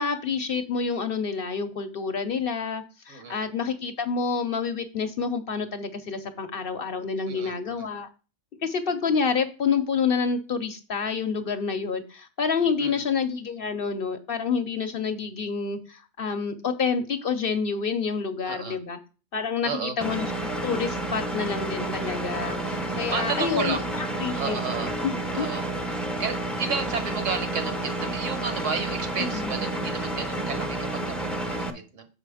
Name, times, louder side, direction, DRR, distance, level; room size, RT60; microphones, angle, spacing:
voice 1, 0.0-8.1 8.6-19.0 19.3-24.6 25.0-25.5 29.3-29.6, left 5 dB, 55° left, 8 dB, 0.8 m, -28 dB
voice 2, 3.1-3.4 7.3-7.9 12.8-13.0 18.4-18.8 19.6-19.9 22.2-22.5 23.1-23.9 24.4-24.9 25.3-25.6 26.2-32.1, right 5 dB, 75° right, 8 dB, 1.4 m, -32 dB
Engine, 20.0-31.7, right 2 dB, ahead, 0.5 m, -30 dB
6.7 x 5.1 x 4.8 m, 0.34 s
omnidirectional pair, 1.3 m